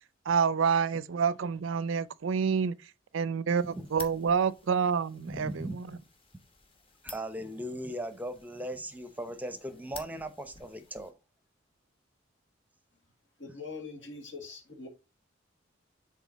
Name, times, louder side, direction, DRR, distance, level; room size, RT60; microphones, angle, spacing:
voice 1, 0.3-5.9, right 6 dB, 85° right, 0.5 m, -28 dB
sound 1, 3.5-11.1, left 4 dB, 30° left, 1.2 m, -51 dB
voice 2, 5.3-6.0 7.0-11.1, right 1 dB, 10° right, 0.7 m, -38 dB
voice 3, 13.4-14.9, left 4 dB, 70° left, 1.7 m, -43 dB
7.4 x 3.7 x 4.0 m
head